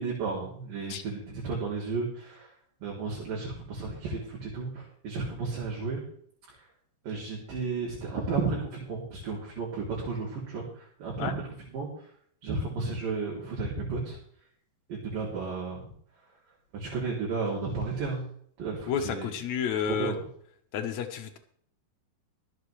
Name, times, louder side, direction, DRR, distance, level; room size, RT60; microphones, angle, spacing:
voice 1, 0.0-2.5 2.8-6.0 7.0-10.6 11.0-11.4 11.7-11.9 12.4-14.2 14.9-15.8 16.7-18.2 18.6-19.3 19.9-20.2, right 4 dB, 60° right, -4 dB, 4.5 m, -33 dB
voice 2, 18.9-20.1 20.7-21.4, left 7 dB, 65° left, 5 dB, 1.8 m, -30 dB
24.0 x 8.1 x 3.3 m, 0.62 s
omnidirectional pair, 4.7 m